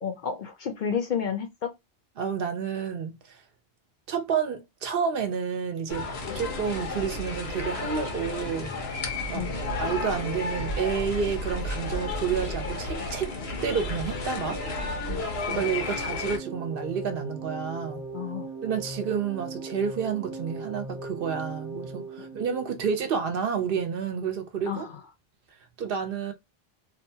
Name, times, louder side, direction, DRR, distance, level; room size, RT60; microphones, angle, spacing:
voice 1, 0.0-1.7 6.3-6.4 9.3-9.5 15.1-15.6 18.1-18.5 22.2-22.3 24.7-25.0, left 7 dB, 55° left, 0.6 m, -32 dB
voice 2, 2.2-3.4 4.1-8.7 9.3-9.5 9.8-13.3 13.6-14.6 15.5-18.0 18.6-24.9 25.8-26.3, right 6 dB, 65° right, 0.7 m, -30 dB
sound 1, 5.9-16.4, left 2 dB, 80° left, 1.0 m, -32 dB
sound 2, 16.0-23.2, right 3 dB, 20° right, 0.5 m, -39 dB
2.7 x 2.2 x 2.6 m
omnidirectional pair, 1.0 m